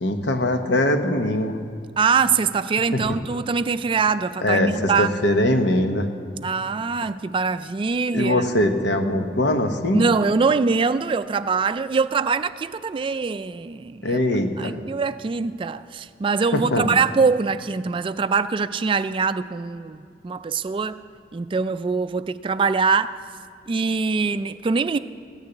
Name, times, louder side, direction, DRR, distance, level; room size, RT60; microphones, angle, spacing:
voice 1, 0.0-1.6 2.9-3.0 4.4-6.1 8.1-10.1 14.0-14.7 16.5-17.0, left 1 dB, 75° left, 1.0 m, -22 dB
voice 2, 2.0-5.1 6.4-8.4 9.9-14.2 14.6-21.0 21.3-23.2 23.7-25.0, right 5 dB, 30° right, 0.3 m, -23 dB
14.5 x 6.8 x 9.1 m
head